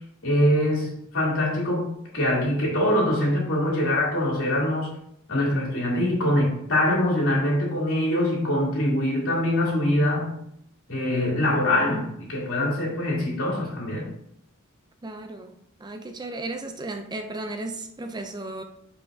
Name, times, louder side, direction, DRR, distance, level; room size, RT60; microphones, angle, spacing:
voice 1, 0.2-4.9 5.3-10.3 10.9-14.1, left 1 dB, 65° left, 3.3 m, -23 dB
voice 2, 15.0-15.6 15.8-18.6, right 2 dB, 20° right, 0.5 m, -34 dB
10.5 x 5.5 x 2.8 m
head